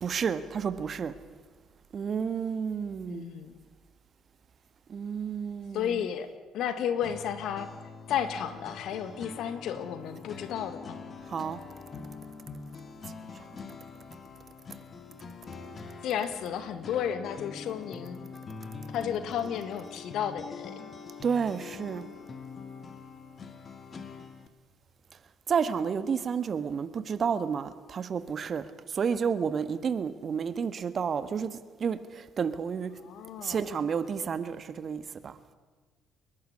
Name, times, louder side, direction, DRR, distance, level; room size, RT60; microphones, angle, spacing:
voice 1, 0.0-1.1 1.9-3.3 4.9-6.0 11.3-11.6 21.2-22.1 25.5-32.9 33.4-35.4, right 6 dB, 45° right, 1.5 m, -31 dB
voice 2, 3.1-3.6 5.7-7.7 8.1-11.0 16.0-18.2 18.9-20.8 33.0-33.7, left 9 dB, 60° left, 1.9 m, -33 dB
sound 1, 7.0-24.5, left 5 dB, 40° left, 2.1 m, -44 dB
29.5 x 11.5 x 9.9 m
hypercardioid pair, 50°, 0 cm